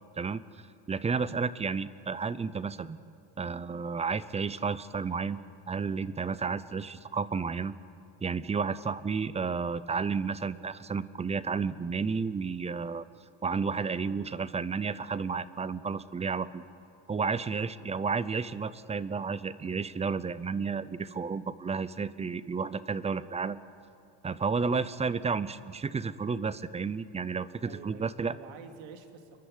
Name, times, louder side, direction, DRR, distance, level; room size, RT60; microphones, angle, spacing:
voice 1, 0.9-3.0 3.4-5.4 5.7-7.7 8.2-13.1 13.4-16.6 17.1-23.6 24.2-28.4, right 5 dB, 15° right, 17 dB, 0.5 m, -32 dB
voice 2, 27.6-29.4, right 5 dB, 70° right, 6 dB, 2.6 m, -48 dB
28.5 x 11.0 x 9.8 m, 2.8 s
cardioid pair, 125°, 47 cm